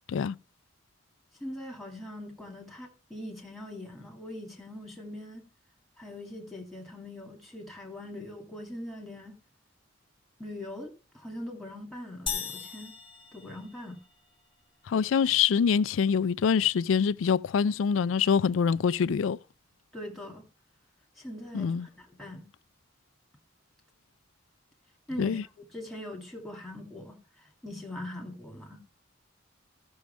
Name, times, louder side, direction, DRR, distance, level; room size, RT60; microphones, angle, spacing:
voice 1, 1.4-5.4 6.0-9.3 10.4-12.9 13.3-14.0 19.9-20.4 21.2-22.4 25.1-28.8, left 1 dB, ahead, 2.3 m, -42 dB
sound 1, 12.3-14.2, left 7 dB, 25° left, 1.0 m, -37 dB
voice 2, 14.9-19.4 21.5-21.9 25.2-25.4, left 6 dB, 75° left, 0.4 m, -25 dB
14.5 x 6.3 x 3.3 m
head